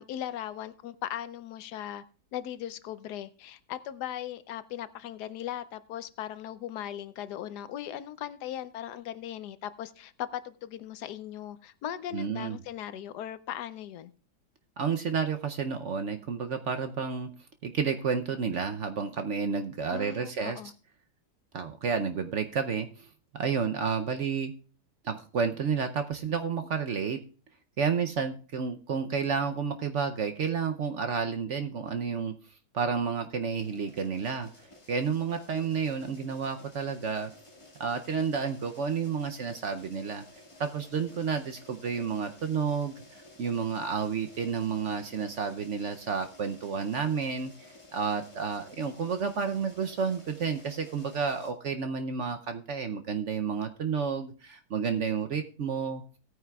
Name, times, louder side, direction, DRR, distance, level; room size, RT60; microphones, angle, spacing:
voice 1, 0.0-2.0 2.3-14.1 19.9-20.7, left 11 dB, 75° left, 1.2 m, -38 dB
voice 2, 12.1-12.6 14.8-17.3 17.6-20.6 21.5-23.1 23.3-24.5 25.0-27.2 27.8-32.3 32.7-34.5 34.9-37.3 37.8-40.2 40.6-47.5 47.9-56.0, right 6 dB, 60° right, 0.8 m, -31 dB
sound 1, 33.5-51.5, left 2 dB, 20° left, 1.7 m, -53 dB
17.5 x 9.2 x 2.3 m
omnidirectional pair, 1.8 m